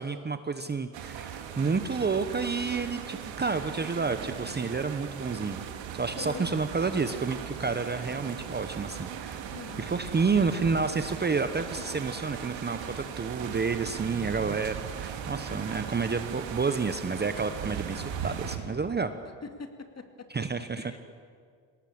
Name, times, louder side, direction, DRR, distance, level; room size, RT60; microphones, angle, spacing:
voice 1, 0.0-5.6 5.9-9.4 9.8-19.1 20.3-20.9, right 4 dB, 20° right, 10 dB, 1.0 m, -30 dB
sound 1, 0.9-18.6, right 8 dB, 65° right, 2.7 m, -38 dB
voice 2, 6.1-6.5 9.5-10.1 15.5-15.9 19.4-21.0, left 4 dB, 30° left, 7 dB, 2.5 m, -44 dB
20.5 x 18.0 x 8.7 m, 2.1 s
supercardioid pair, 85°, 49 cm